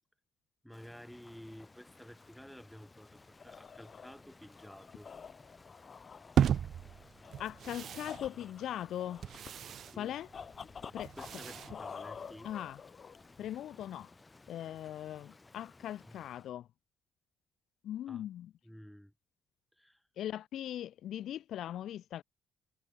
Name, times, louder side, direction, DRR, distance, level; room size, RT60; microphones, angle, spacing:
voice 1, 0.6-5.1 9.9-10.1 10.9-12.5 16.1-16.2 18.1-18.3 18.6-19.1 19.8-20.0, equal, ahead, 3.2 m, -52 dB
Rain, 0.7-16.5, left 3 dB, 20° left, 4.2 m, -59 dB
sound 1, 3.1-13.5, left 6 dB, 45° left, 0.9 m, -49 dB
sound 2, 6.4-12.6, right 9 dB, 65° right, 0.4 m, -36 dB
voice 2, 7.4-9.2 10.0-10.3 10.9-11.2 11.7-11.8 12.4-12.8 13.4-14.1 14.5-16.7 17.8-18.5 20.2-22.2, left 11 dB, 75° left, 0.3 m, -40 dB
cardioid pair, 90°, 0 cm